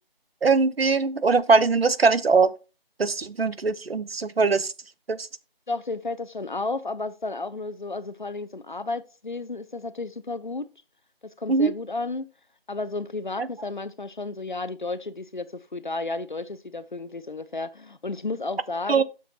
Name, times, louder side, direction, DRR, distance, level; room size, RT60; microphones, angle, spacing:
voice 1, 0.4-2.5 3.0-4.7 5.1-5.3 11.5-11.7 13.4-13.5 18.9-19.0, right 4 dB, 80° right, 0.8 m, -21 dB
voice 2, 5.7-10.7 11.2-12.3 12.7-19.0, left 3 dB, 55° left, 0.7 m, -32 dB
10.0 x 7.0 x 2.4 m
figure-of-eight pair, 175°, 29 cm